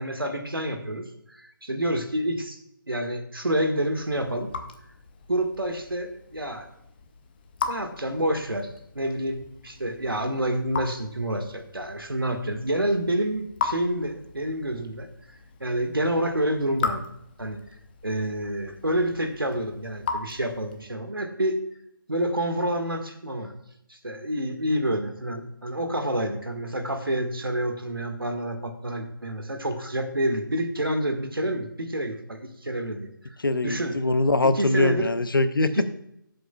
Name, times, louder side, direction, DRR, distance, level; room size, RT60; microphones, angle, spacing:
voice 1, 0.0-2.6 2.9-4.5 5.3-6.7 7.7-8.7 9.0-15.1 15.6-17.0 17.4-17.6 18.0-21.6 22.1-23.5 23.9-33.1 33.6-34.0 34.5-35.1 35.6-35.8, right 1 dB, 85° right, 6 dB, 1.6 m, -28 dB
Raindrop / Drip, 3.8-21.0, left 5 dB, 25° left, 0.9 m, -38 dB
voice 2, 33.4-35.7, left 2 dB, 75° left, 12 dB, 0.9 m, -22 dB
17.0 x 7.8 x 2.3 m, 0.77 s
figure-of-eight pair, 150°, 12 cm